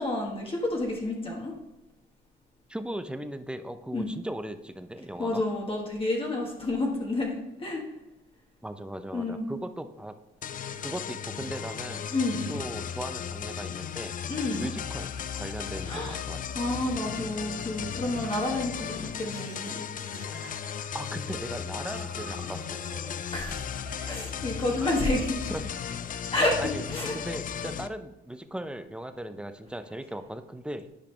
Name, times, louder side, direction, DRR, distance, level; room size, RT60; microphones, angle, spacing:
voice 1, 0.0-1.5 3.9-4.1 5.2-7.8 9.1-9.5 12.1-12.5 14.3-14.7 15.8-16.2 16.5-19.8 23.3-23.7 24.0-25.5 26.3-26.6 26.9-27.1, left 2 dB, 25° left, -1 dB, 1.4 m, -29 dB
voice 2, 2.7-5.4 8.6-10.1 10.8-12.1 12.5-14.2 14.6-16.5 20.2-20.3 20.9-22.8 24.8-24.9 25.5-25.7 26.6-26.8 27.1-30.9, right 1 dB, 5° right, 9 dB, 0.6 m, -38 dB
sound 1, 10.4-27.9, left 8 dB, 45° left, 0.4 m, -36 dB
Laughter, 17.7-24.5, right 3 dB, 60° right, 1.6 m, -49 dB
10.0 x 5.0 x 3.3 m, 0.96 s
cardioid pair, 90°, 20 cm